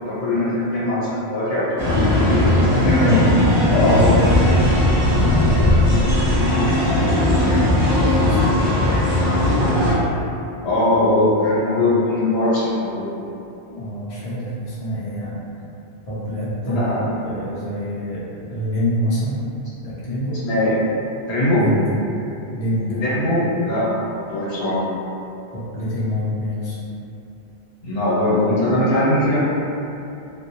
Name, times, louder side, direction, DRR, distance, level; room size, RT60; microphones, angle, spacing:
voice 1, 0.0-3.2 3.7-4.1 10.6-13.0 16.7-17.1 20.4-20.8 21.3-21.7 23.0-24.8 27.8-29.4, left 1 dB, 75° left, -8 dB, 1.0 m, -20 dB
sound 1, 1.8-9.9, left 1 dB, 60° right, 0.8 m, -17 dB
voice 2, 2.8-3.3 3.7-9.8 13.7-15.4 16.1-19.5 19.8-20.4 21.5-21.9 22.5-23.0 25.5-26.8, equal, 40° left, -10 dB, 0.6 m, -26 dB
2.2 x 2.1 x 2.8 m, 2.7 s
omnidirectional pair, 1.1 m